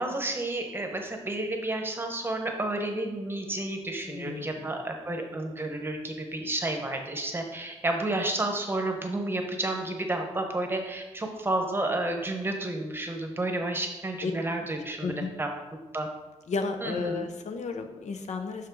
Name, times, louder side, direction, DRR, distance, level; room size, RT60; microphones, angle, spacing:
voice 1, 0.0-15.1 15.4-15.5 15.9-16.1 16.8-17.2, right 2 dB, 20° right, 3 dB, 0.9 m, -31 dB
voice 2, 4.0-4.7 14.2-14.3 15.0-15.3 16.5-18.7, left 4 dB, 75° left, 7 dB, 0.7 m, -33 dB
6.4 x 5.8 x 4.6 m, 1.1 s
wide cardioid pair, 145°, 12 cm